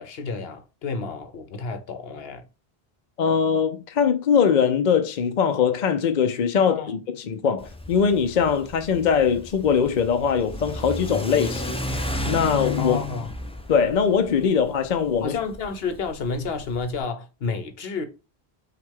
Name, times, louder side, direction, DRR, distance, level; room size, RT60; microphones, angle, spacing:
voice 1, 0.0-2.4 6.5-7.0 12.8-13.3 15.2-18.1, left 4 dB, 70° left, 1.1 m, -31 dB
voice 2, 3.2-11.7 12.3-13.0 13.7-15.4, left 6 dB, 50° left, 0.6 m, -21 dB
Car / Accelerating revving vroom, 7.6-17.0, left 1 dB, 10° left, 0.4 m, -33 dB
5.7 x 2.4 x 3.6 m
omnidirectional pair, 1.1 m